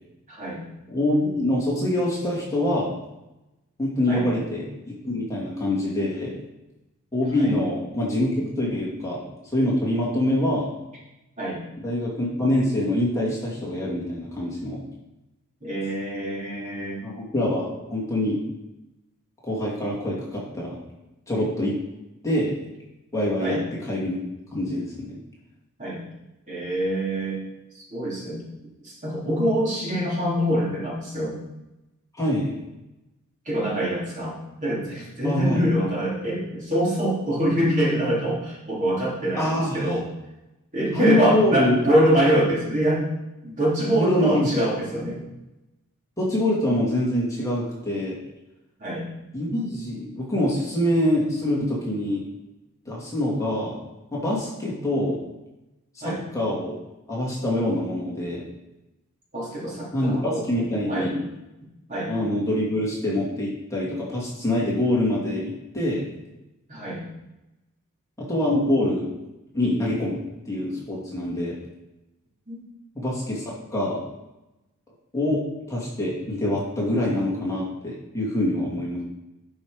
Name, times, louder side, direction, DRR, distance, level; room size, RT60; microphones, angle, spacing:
voice 1, 0.3-0.6 4.0-4.3 7.4-7.5 11.4-11.6 15.6-17.0 23.4-23.6 25.8-26.0 26.5-27.4 27.7-28.4 28.8-31.4 33.4-40.0 40.7-43.0 43.4-45.2 48.8-49.0 56.0-56.2 59.3-60.4 60.9-61.1 61.9-62.1 66.7-67.0 72.5-72.6, right 1 dB, 35° right, -6 dB, 3.4 m, -25 dB
voice 2, 0.9-2.9 3.8-6.3 7.1-9.2 9.5-10.7 11.8-14.8 17.0-18.4 19.4-20.8 21.3-21.8 22.2-22.5 23.1-23.6 23.9-24.2 24.5-25.2 32.2-32.5 35.2-35.7 39.3-39.8 40.9-41.7 43.9-44.5 46.2-48.2 49.3-52.3 52.9-53.8 54.1-55.2 55.9-56.7 57.1-58.4 59.9-61.1 62.1-66.1 68.2-69.1 69.5-71.6 72.9-74.0 75.1-75.4 75.7-79.0, left 1 dB, 15° left, -6 dB, 2.5 m, -25 dB
11.5 x 5.6 x 5.1 m, 0.97 s
head